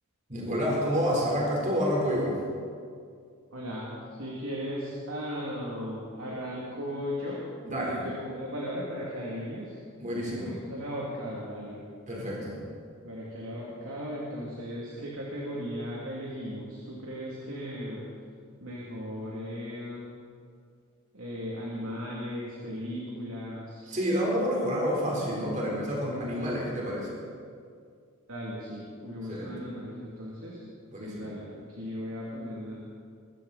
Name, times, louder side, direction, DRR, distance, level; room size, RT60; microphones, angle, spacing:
voice 1, 0.3-2.4 7.6-8.0 10.0-10.5 12.1-12.6 23.8-27.1 29.3-29.5 30.9-31.3, equal, 35° right, -4 dB, 4.3 m, -29 dB
voice 2, 3.5-3.9 4.2-7.4 7.7-9.8 10.3-11.8 13.0-18.0 18.6-20.1 21.1-24.0 28.3-30.6 31.0-32.8, equal, 65° right, -5 dB, 2.9 m, -37 dB
22.0 x 14.5 x 4.3 m, 2.2 s
head